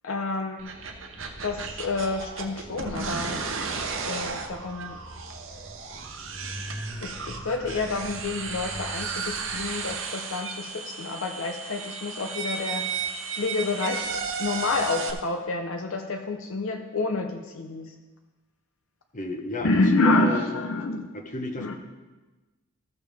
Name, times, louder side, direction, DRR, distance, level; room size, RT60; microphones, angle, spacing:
voice 1, 0.0-0.6 1.4-3.4 4.0-5.0 7.0-12.9 13.3-14.1 14.4-18.0 19.6-21.1 21.6-21.7, left 3 dB, 65° left, 4 dB, 0.6 m, -28 dB
sound 1, 0.6-15.1, right 5 dB, 60° right, 0.9 m, -34 dB
sound 2, 1.1-9.9, equal, 15° left, 1.5 m, -44 dB
voice 2, 19.1-19.7 20.0-20.4 21.1-21.7, left 2 dB, 35° left, 4 dB, 1.0 m, -33 dB
14.5 x 6.7 x 3.5 m, 1.2 s
head